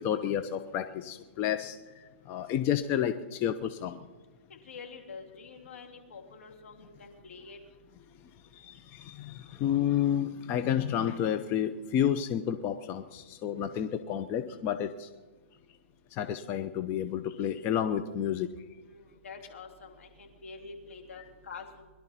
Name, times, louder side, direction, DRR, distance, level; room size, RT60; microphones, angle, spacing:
voice 1, 0.0-1.8 2.3-4.0 8.6-15.1 16.2-18.5 21.2-21.3 21.5-21.6, left 10 dB, 30° left, 10 dB, 0.7 m, -30 dB
voice 2, 4.5-7.6 18.8-21.8, left 4 dB, 75° left, 2 dB, 3.1 m, -47 dB
22.0 x 12.0 x 4.3 m, 1.3 s
hypercardioid pair, 135°, 7 cm